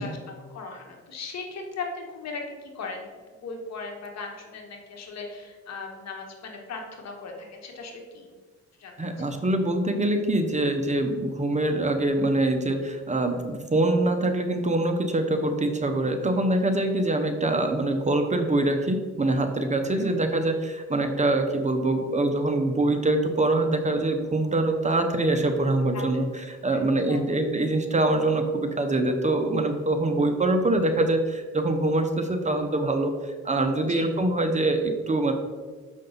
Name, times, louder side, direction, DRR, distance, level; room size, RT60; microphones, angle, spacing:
voice 1, 0.0-3.1 3.4-8.3 8.8-9.1 19.8-20.1 25.3-25.4 25.9-26.0 26.4-26.5 27.0-27.2 33.9-34.1, left 4 dB, 60° left, 2 dB, 1.4 m, -38 dB
voice 2, 9.0-35.3, right 2 dB, 25° right, 6 dB, 0.7 m, -24 dB
6.6 x 5.4 x 3.9 m, 1.4 s
cardioid pair, 90°, 30 cm